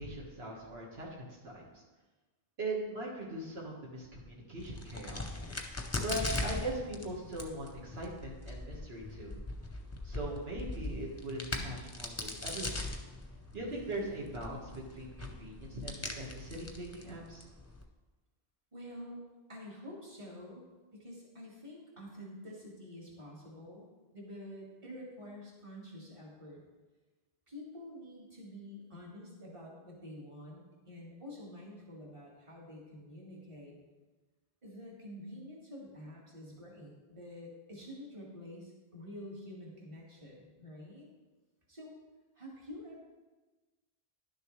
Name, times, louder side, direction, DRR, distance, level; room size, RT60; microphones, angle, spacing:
voice 1, 0.0-1.8 2.6-5.7 6.0-9.4 10.0-12.8 13.5-17.4, right 1 dB, 80° right, -4 dB, 1.8 m, -40 dB
Crack, 4.6-17.8, left 2 dB, 15° left, 0.7 m, -41 dB
voice 2, 18.7-20.6 20.9-26.6 27.5-33.8 34.6-41.1 41.7-41.9 42.3-43.0, left 1 dB, 30° right, -3 dB, 1.8 m, -48 dB
11.0 x 6.6 x 3.2 m, 1.2 s
omnidirectional pair, 1.0 m